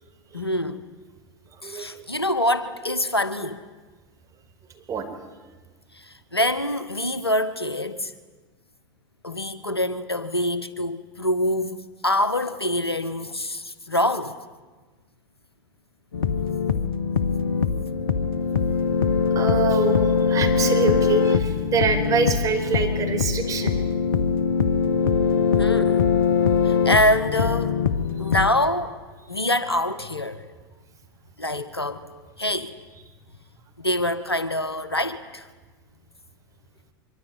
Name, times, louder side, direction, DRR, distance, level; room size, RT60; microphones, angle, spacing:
voice 1, 0.3-0.8 1.6-3.6 5.9-8.1 9.2-11.8 12.0-14.3 25.6-26.0 26.6-27.8 28.2-29.0 29.3-30.4 31.4-32.0 32.4-32.7 33.8-35.5, left 1 dB, 85° left, 1.5 m, -25 dB
sound 1, 16.1-28.5, left 6 dB, 70° left, 1.6 m, -22 dB
voice 2, 19.3-23.8 25.6-25.7, right 5 dB, 25° right, 4.8 m, -25 dB
24.5 x 23.5 x 9.6 m
figure-of-eight pair, 80°, 13 cm